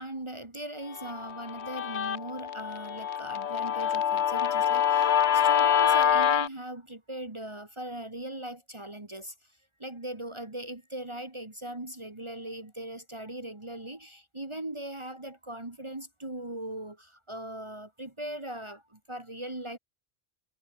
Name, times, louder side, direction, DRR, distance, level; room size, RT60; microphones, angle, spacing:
voice 1, 0.0-19.8, right 1 dB, 25° right, 2.0 m, -40 dB
Guitar, 1.0-6.5, left 8 dB, 85° left, 1.2 m, -26 dB
omnidirectional pair, 1.1 m